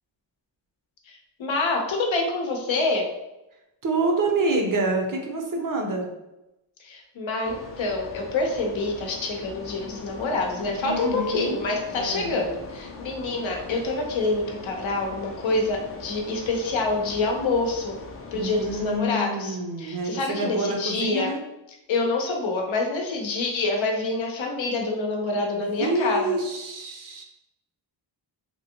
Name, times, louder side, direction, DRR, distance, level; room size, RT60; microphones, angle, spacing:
voice 1, 1.1-3.0 6.8-18.0 18.3-21.3 21.9-26.3, left 3 dB, 90° left, 2 dB, 0.7 m, -27 dB
voice 2, 3.8-6.1 10.8-11.6 11.9-12.4 18.3-21.4 25.5-27.2, right 2 dB, 45° right, 2 dB, 0.6 m, -27 dB
sound 1, 7.4-19.0, left 3 dB, 35° left, 0.4 m, -41 dB
3.0 x 2.6 x 2.7 m, 0.93 s
wide cardioid pair, 125°, 45 cm